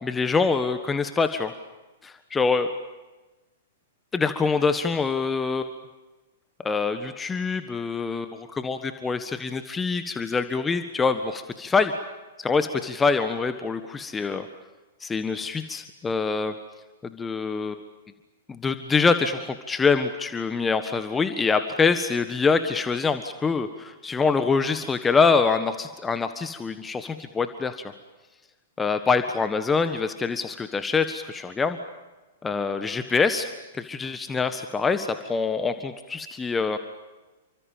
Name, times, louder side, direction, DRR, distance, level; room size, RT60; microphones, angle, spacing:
voice 1, 0.0-1.5 2.0-2.7 4.1-5.7 6.6-11.9 12.4-14.5 15.0-16.5 17.0-17.8 18.5-27.9 28.8-31.8 32.4-33.5 33.7-36.8, left 4 dB, 15° left, 9 dB, 1.5 m, -25 dB
30.0 x 25.5 x 7.4 m, 1.2 s
figure-of-eight pair, 105°, 0 cm